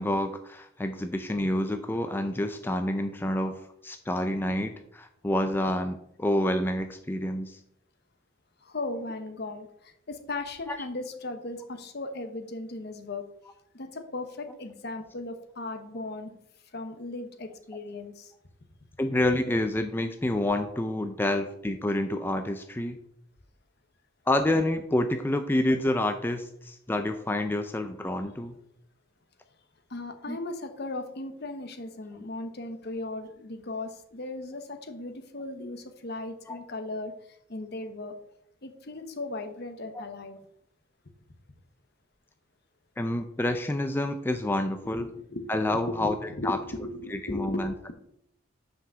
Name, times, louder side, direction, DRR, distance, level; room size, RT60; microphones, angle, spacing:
voice 1, 0.0-7.6 10.7-10.8 19.0-23.0 24.3-28.6 30.3-30.4 36.5-36.6 39.9-40.0 43.0-45.1 45.5-46.6 47.1-47.7, left 1 dB, 10° left, 7 dB, 0.4 m, -28 dB
voice 2, 8.6-13.2 13.7-16.4 16.7-18.3 29.9-37.1 37.5-38.1 38.6-40.4 44.6-47.9, left 2 dB, 55° left, 7 dB, 1.0 m, -37 dB
6.0 x 5.0 x 6.8 m, 0.73 s
head